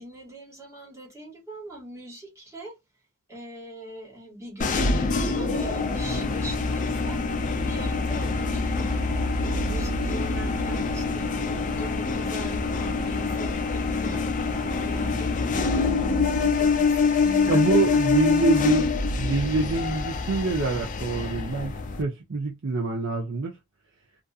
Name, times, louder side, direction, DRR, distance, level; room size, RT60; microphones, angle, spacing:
voice 1, 0.0-2.8 3.3-7.2 7.7-18.7, right 1 dB, 15° right, 1.1 m, -41 dB
sound 1, 4.6-22.0, left 4 dB, 35° left, 0.4 m, -25 dB
voice 2, 17.5-23.5, right 3 dB, 60° right, 0.5 m, -26 dB
2.6 x 2.4 x 2.3 m
head